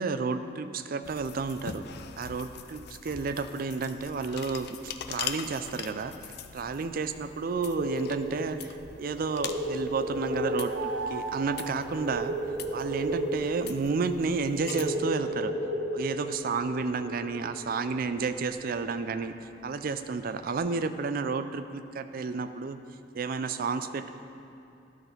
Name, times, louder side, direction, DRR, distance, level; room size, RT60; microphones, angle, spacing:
voice 1, 0.0-1.8 2.2-6.1 6.5-12.4 12.7-15.5 15.9-19.3 19.6-22.8 23.1-24.1, right 4 dB, 50° right, 11 dB, 0.4 m, -31 dB
sound 1, 1.0-14.8, left 7 dB, 60° left, 0.4 m, -43 dB
sound 2, 7.8-18.3 18.6-18.7 18.9-19.1 19.5-19.8, right 1 dB, 70° right, 1.5 m, -34 dB
sound 3, 9.9-12.8, right 4 dB, 90° right, 0.7 m, -38 dB
13.5 x 6.0 x 4.0 m, 2.7 s
head